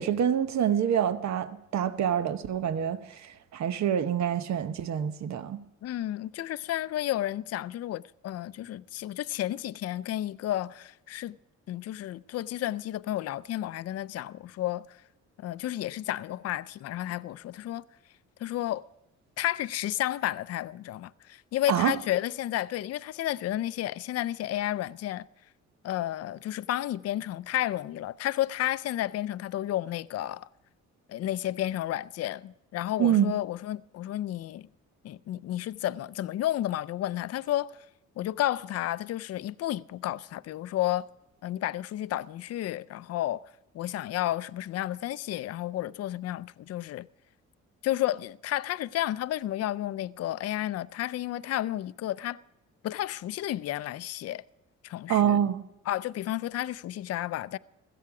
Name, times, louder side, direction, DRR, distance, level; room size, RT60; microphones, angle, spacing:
voice 1, 0.0-5.6 21.7-21.9 33.0-33.3 55.1-55.6, right 9 dB, 65° right, 1.0 m, -26 dB
voice 2, 5.8-11.4 11.7-15.0 15.4-17.8 18.4-18.8 19.4-25.3 25.8-30.5 31.1-34.7 35.0-37.9 38.2-41.1 41.4-47.1 47.8-52.4 52.8-54.4 54.8-55.4 55.9-57.6, left 13 dB, 55° left, 0.5 m, -32 dB
16.0 x 13.5 x 4.8 m
cardioid pair, 90°, 30 cm